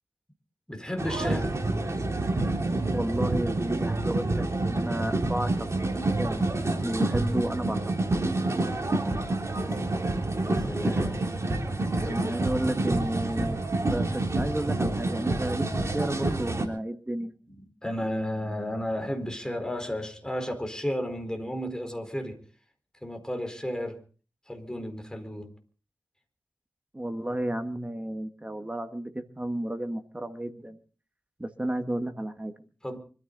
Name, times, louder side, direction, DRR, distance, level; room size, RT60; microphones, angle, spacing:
voice 1, 0.7-1.5 9.6-11.3 12.0-12.6 17.2-22.4 23.0-24.0 24.5-25.5 32.8-33.0, equal, 10° left, 4.4 m, -34 dB
sound 1, 1.0-16.7, right 2 dB, 40° right, 3.5 m, -28 dB
voice 2, 2.9-5.5 6.2-6.4 6.8-7.8 12.0-15.7 15.9-17.3 26.9-30.8 31.4-32.5, right 1 dB, 15° right, 1.7 m, -32 dB
25.0 x 14.0 x 4.0 m
wide cardioid pair, 85°, 8 cm